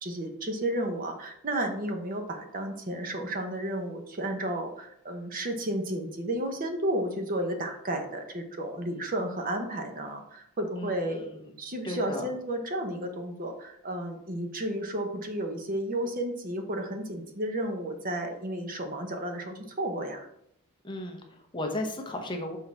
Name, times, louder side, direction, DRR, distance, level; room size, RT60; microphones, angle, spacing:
voice 1, 0.0-11.3 11.6-20.3, right 1 dB, 40° right, 5 dB, 1.0 m, -32 dB
voice 2, 10.7-11.5 11.8-12.3 20.8-22.6, left 1 dB, 20° left, 3 dB, 0.9 m, -35 dB
6.3 x 3.9 x 5.9 m, 0.74 s
head